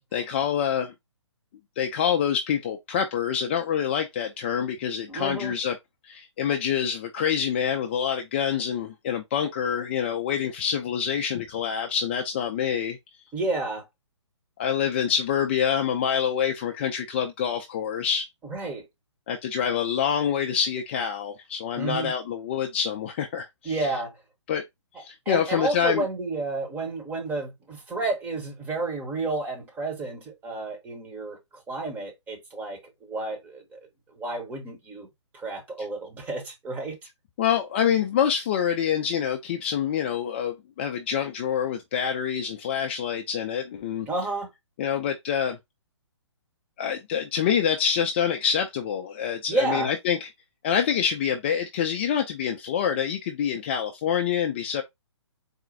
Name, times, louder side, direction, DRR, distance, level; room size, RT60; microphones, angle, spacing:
voice 1, 0.1-0.9 1.8-5.8 6.0-13.0 14.6-18.3 19.3-23.9 24.5-24.6 25.0-26.0 37.4-44.1 44.8-45.6 46.8-50.3 50.6-54.8, left 8 dB, 25° left, 0.4 m, -26 dB
voice 2, 5.1-5.5 13.3-13.9 18.5-18.9 21.8-22.1 23.6-24.2 25.3-33.8 34.1-35.1 35.3-37.0 44.1-44.5 49.5-49.9, right 3 dB, 10° right, 0.8 m, -31 dB
4.2 x 2.2 x 3.8 m
figure-of-eight pair, 130°, 15 cm